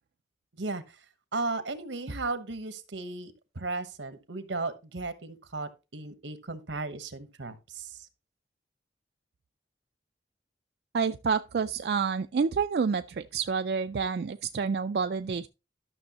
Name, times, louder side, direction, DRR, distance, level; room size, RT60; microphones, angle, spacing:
voice 1, 1.3-8.0, right 3 dB, 85° right, 1.1 m, -35 dB
voice 2, 10.9-15.5, right 5 dB, 60° right, 0.3 m, -28 dB
12.5 x 6.3 x 2.9 m
head